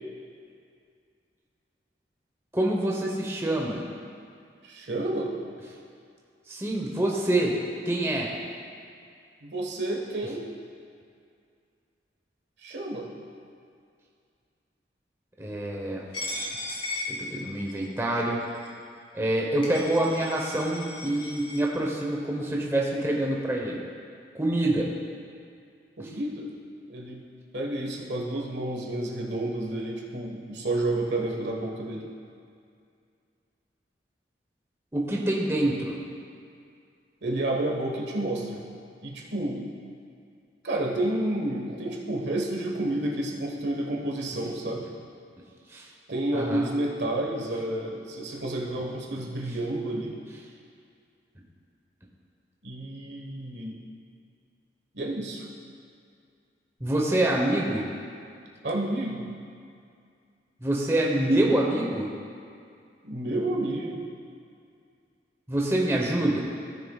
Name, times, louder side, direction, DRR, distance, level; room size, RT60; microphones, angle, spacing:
voice 1, 2.5-3.8 6.5-7.6 7.8-8.3 15.4-16.1 17.1-18.4 19.1-23.8 24.3-24.9 26.0-26.1 34.9-36.0 45.7-45.9 46.3-46.7 56.8-57.8 60.6-62.1 65.5-66.4, right 1 dB, 15° right, -2 dB, 1.0 m, -26 dB
voice 2, 4.6-5.3 9.4-10.4 12.6-13.1 26.0-26.5 26.9-27.2 27.5-32.1 37.2-38.6 39.0-39.6 40.6-44.9 46.1-50.2 52.6-53.8 54.9-55.4 58.6-59.3 63.0-64.0, right 1 dB, 80° right, -1 dB, 1.4 m, -30 dB
Coin (dropping), 16.1-17.9 18.5-18.7 19.3-19.4 19.6-21.6, left 2 dB, 30° left, 1.8 m, -36 dB
16.5 x 6.7 x 2.4 m, 2.3 s
head